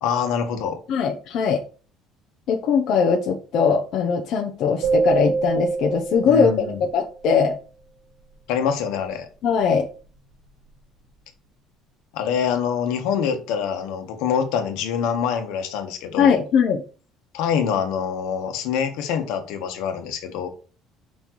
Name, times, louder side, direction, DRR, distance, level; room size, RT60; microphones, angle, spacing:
voice 1, 0.0-0.8 6.2-6.8 8.5-9.3 12.1-16.4 17.3-20.5, left 7 dB, 75° left, 6 dB, 1.4 m, -25 dB
voice 2, 0.9-1.6 2.5-7.6 9.4-9.9 16.2-16.8, left 6 dB, 45° left, 1 dB, 0.8 m, -20 dB
sound 1, 4.8-7.1, right 4 dB, 70° right, 2.6 m, -25 dB
5.4 x 4.3 x 4.6 m, 0.37 s
cardioid pair, 175°, 0 cm